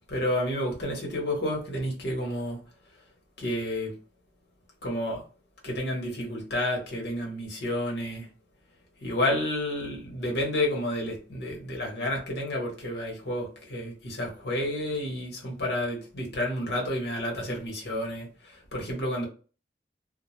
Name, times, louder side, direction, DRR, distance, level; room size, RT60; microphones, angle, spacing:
voice 1, 0.1-2.6 3.4-4.0 4.8-5.2 5.6-8.3 9.0-19.3, left 1 dB, 70° left, 1.0 m, -30 dB
2.2 x 2.2 x 3.0 m
head